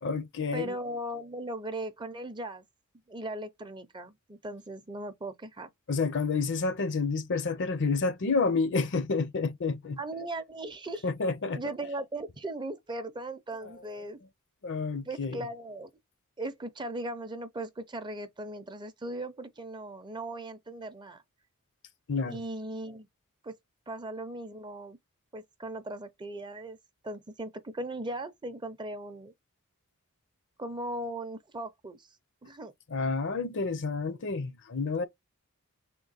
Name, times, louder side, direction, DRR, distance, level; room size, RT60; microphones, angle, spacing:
voice 1, 0.0-0.7 5.9-10.0 11.0-11.6 14.6-15.4 22.1-22.4 32.9-35.0, left 4 dB, 55° left, 0.6 m, -29 dB
voice 2, 0.5-2.6 3.1-5.7 10.0-11.1 11.5-14.2 15.1-15.9 16.4-21.2 22.2-23.1 23.4-23.5 23.9-25.0 25.3-26.8 27.0-29.3 30.6-32.1 32.4-32.7, right 1 dB, 20° right, 0.5 m, -38 dB
3.7 x 2.2 x 4.0 m
head